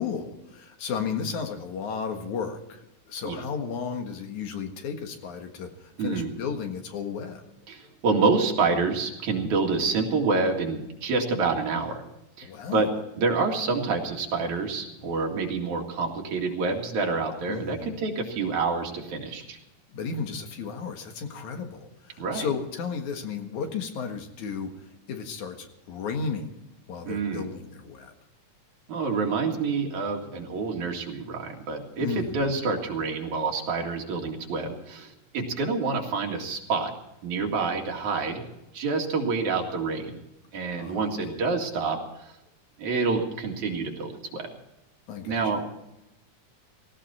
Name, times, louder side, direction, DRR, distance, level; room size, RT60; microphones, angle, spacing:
voice 1, 0.0-7.5 12.4-12.9 17.5-17.9 19.9-24.7 25.1-26.6 26.9-28.1 32.0-32.5 40.8-41.5 45.1-45.4, left 6 dB, 75° left, 5 dB, 3.0 m, -34 dB
voice 2, 6.0-6.3 7.7-12.0 12.4-12.9 13.2-19.6 22.2-22.5 27.0-27.5 28.9-36.9 37.2-38.4 38.7-40.2 40.5-42.3 42.8-44.5 45.2-45.6, right 4 dB, 75° right, 1 dB, 3.5 m, -27 dB
18.0 x 16.5 x 4.3 m, 0.89 s
omnidirectional pair, 3.4 m